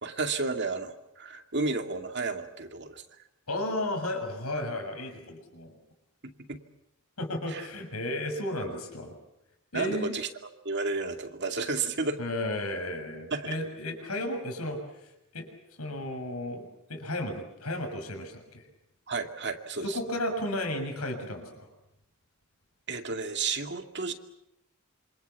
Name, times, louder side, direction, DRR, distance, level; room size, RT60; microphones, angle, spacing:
voice 1, 0.0-3.0 6.5-6.6 7.5-7.7 9.7-10.3 10.6-12.2 13.3-13.5 19.1-20.0 22.9-24.1, right 4 dB, 50° right, 6 dB, 2.4 m, -32 dB
voice 2, 3.5-5.8 7.2-9.2 9.7-10.1 12.2-15.5 15.8-18.7 19.8-21.7, left 1 dB, 90° left, 4 dB, 6.9 m, -34 dB
27.5 x 26.0 x 7.1 m, 0.86 s
head